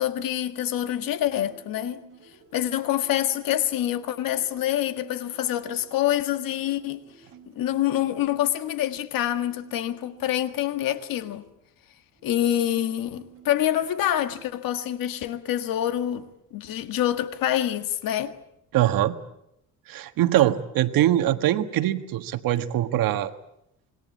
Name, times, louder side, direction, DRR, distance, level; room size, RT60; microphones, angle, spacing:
voice 1, 0.0-2.0 2.5-7.0 7.6-11.4 12.2-18.3, left 12 dB, 80° left, 1.8 m, -26 dB
sound 1, 1.0-11.3 12.1-14.4 15.6-16.1, right 6 dB, 40° right, 4.6 m, -53 dB
voice 2, 18.7-19.2 19.9-23.3, right 13 dB, 85° right, 1.6 m, -22 dB
26.5 x 21.0 x 8.5 m
cardioid pair, 165°, 34 cm